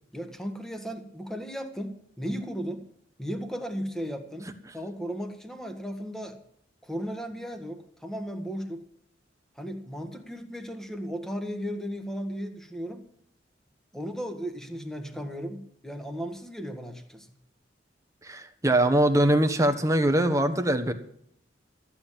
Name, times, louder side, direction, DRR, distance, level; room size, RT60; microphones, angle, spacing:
voice 1, 0.1-2.9 3.2-6.4 6.8-8.9 9.5-13.1 13.9-17.3, equal, 5° left, 6 dB, 1.7 m, -35 dB
voice 2, 18.2-20.9, right 1 dB, 15° right, 7 dB, 1.3 m, -22 dB
14.0 x 9.1 x 7.5 m, 0.67 s
head